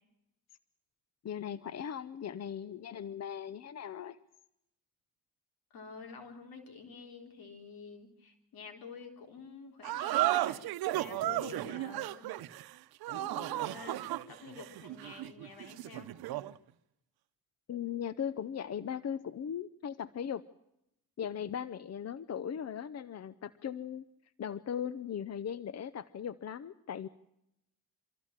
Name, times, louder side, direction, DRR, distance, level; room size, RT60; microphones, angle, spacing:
voice 1, 1.2-4.2 17.7-20.4 21.2-24.0 24.4-27.1, left 8 dB, 45° left, 17 dB, 0.8 m, -38 dB
voice 2, 5.7-10.7 10.9-12.3 13.0-16.1, left 5 dB, 80° left, 4 dB, 3.9 m, -49 dB
sound 1, 9.8-16.6, right 16 dB, 85° right, 0.8 m, -34 dB
24.5 x 14.5 x 7.4 m, 0.83 s
cardioid pair, 75°, 36 cm